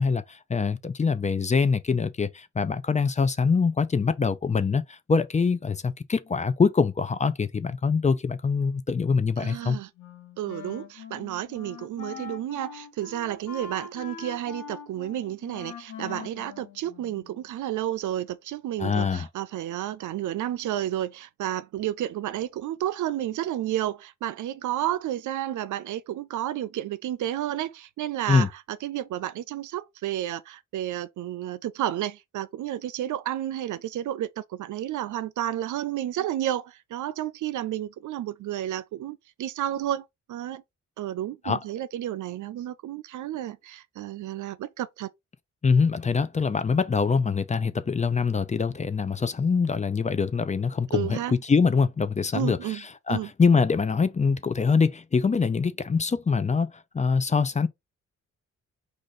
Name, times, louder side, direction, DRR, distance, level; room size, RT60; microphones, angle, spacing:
voice 1, 0.0-9.8 18.8-19.3 28.3-28.5 41.4-41.6 45.6-57.7, left 5 dB, 25° left, 0.5 m, -24 dB
voice 2, 9.4-9.9 10.4-28.5 28.8-40.6 41.0-45.1 50.9-51.3 52.3-52.8 53.1-53.3, right 12 dB, 80° right, 0.5 m, -31 dB
Wind instrument woodwind instrument, 10.0-17.4, left 6 dB, 85° left, 1.3 m, -42 dB
4.9 x 2.5 x 4.0 m
cardioid pair, 105°, 30 cm